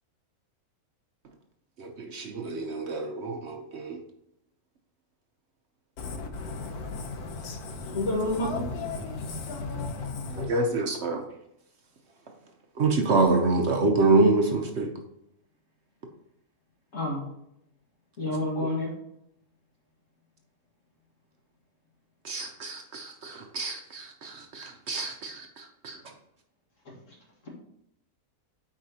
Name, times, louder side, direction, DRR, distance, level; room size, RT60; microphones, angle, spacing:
voice 1, 1.8-4.0 10.5-11.2 12.8-14.9 22.2-25.4 25.8-26.0, right 3 dB, 55° right, 3 dB, 0.9 m, -26 dB
voice 2, 6.0-8.0 8.7-10.5, left 4 dB, 85° left, 5 dB, 1.4 m, -35 dB
voice 3, 7.9-8.7 16.9-17.2 18.2-18.9 26.9-27.0, left 1 dB, 60° left, -2 dB, 2.0 m, -28 dB
8.6 x 4.7 x 2.8 m, 0.78 s
omnidirectional pair, 1.6 m